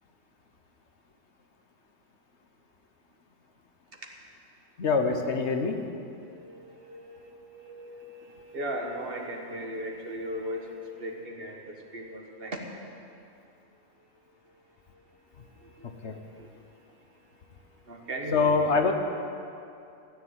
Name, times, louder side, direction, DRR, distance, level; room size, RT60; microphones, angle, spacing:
voice 1, 4.8-5.8 16.0-16.1 18.3-18.9, left 4 dB, 70° left, 5 dB, 1.3 m, -24 dB
voice 2, 6.1-7.3 7.5-12.6 15.3-17.2 17.7-18.7, right 1 dB, 55° right, 2 dB, 1.6 m, -38 dB
15.5 x 7.0 x 9.5 m, 2.6 s
omnidirectional pair, 1.2 m